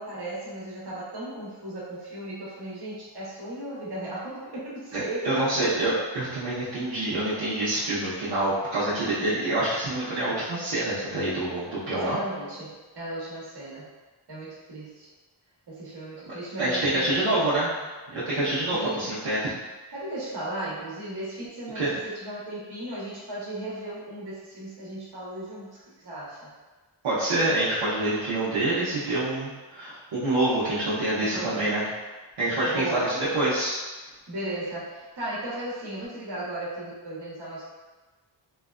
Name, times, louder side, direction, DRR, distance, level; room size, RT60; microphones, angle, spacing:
voice 1, 0.0-5.7 11.9-13.9 14.3-15.1 15.7-17.7 18.7-19.2 19.9-26.5 31.2-31.7 32.7-33.2 34.3-37.7, right 1 dB, 55° right, -7 dB, 1.2 m, -36 dB
voice 2, 4.9-12.2 16.2-17.7 18.1-19.5 21.7-21.9 27.0-31.9 32.4-33.8, right 1 dB, 70° right, -12 dB, 1.0 m, -26 dB
3.2 x 2.2 x 2.4 m, 1.2 s
cardioid pair, 55°, 48 cm